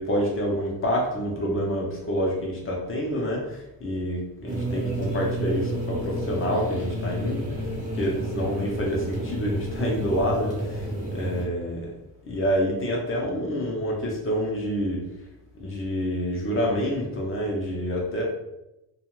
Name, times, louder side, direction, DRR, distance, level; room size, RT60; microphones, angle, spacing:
voice 1, 0.0-7.4 7.9-11.9 12.2-15.0 15.6-18.2, equal, 30° left, -1 dB, 0.7 m, -27 dB
sound 1, 4.5-11.5, right 1 dB, 20° right, 0.6 m, -30 dB
2.4 x 2.3 x 3.0 m, 0.91 s
cardioid pair, 140°, 42 cm